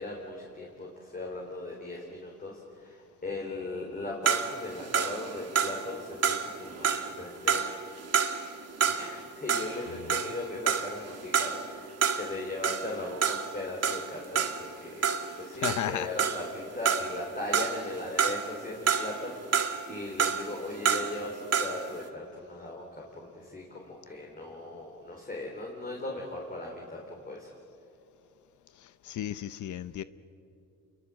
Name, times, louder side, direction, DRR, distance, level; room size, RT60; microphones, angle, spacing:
voice 1, 0.0-7.8 8.2-8.5 8.8-27.5, left 2 dB, 30° left, -1 dB, 4.2 m, -38 dB
sound 1, 4.3-9.2 9.5-16.6 16.9-18.5 18.9-21.9, right 7 dB, 50° right, 2.0 m, -29 dB
voice 2, 15.6-16.1 28.8-30.0, left 11 dB, 70° left, 14 dB, 0.8 m, -34 dB
28.5 x 22.5 x 7.6 m, 2.6 s
cardioid pair, 100°, 31 cm